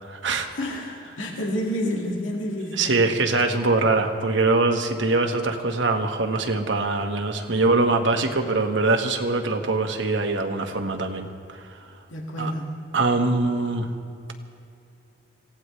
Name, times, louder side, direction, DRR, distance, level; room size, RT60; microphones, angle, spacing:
voice 1, 0.0-0.5 2.8-11.9 12.4-12.5 12.9-13.9, right 3 dB, 75° right, 4 dB, 1.4 m, -23 dB
voice 2, 0.5-2.9 12.1-12.8, equal, 90° left, -1 dB, 2.1 m, -29 dB
26.0 x 17.0 x 3.2 m, 2.6 s
head